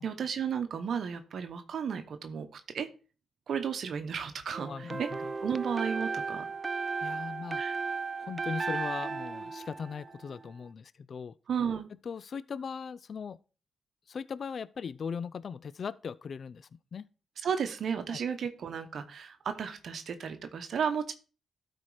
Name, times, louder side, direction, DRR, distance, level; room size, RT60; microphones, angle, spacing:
voice 1, 0.0-2.9 3.5-5.1 5.4-6.4 7.6-7.8 11.5-11.9 17.4-21.1, right 7 dB, 65° right, 1.0 m, -33 dB
sound 1, 4.5-10.5, right 4 dB, 35° right, 0.4 m, -35 dB
voice 2, 4.7-5.3 7.0-7.6 8.2-11.3 12.0-13.4 14.1-17.1 18.1-18.2, left 6 dB, 50° left, 0.3 m, -39 dB
12.0 x 4.4 x 4.8 m
cardioid pair, 80°, 0 cm